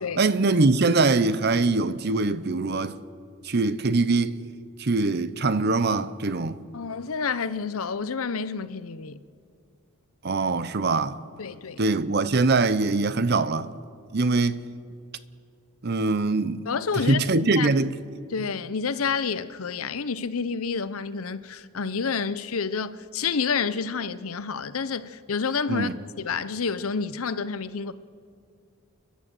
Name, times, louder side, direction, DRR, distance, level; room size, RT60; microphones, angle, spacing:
voice 1, 0.2-3.0 3.4-4.3 4.8-6.6 10.2-11.2 11.8-13.7 14.1-14.6 15.8-16.7 16.9-18.0 25.7-25.9, right 3 dB, 50° right, 0.7 m, -23 dB
voice 2, 6.7-9.2 11.4-11.8 16.7-17.3 17.6-17.7 18.3-25.9 26.2-27.9, left 5 dB, 75° left, 0.7 m, -29 dB
30.0 x 11.5 x 7.8 m
head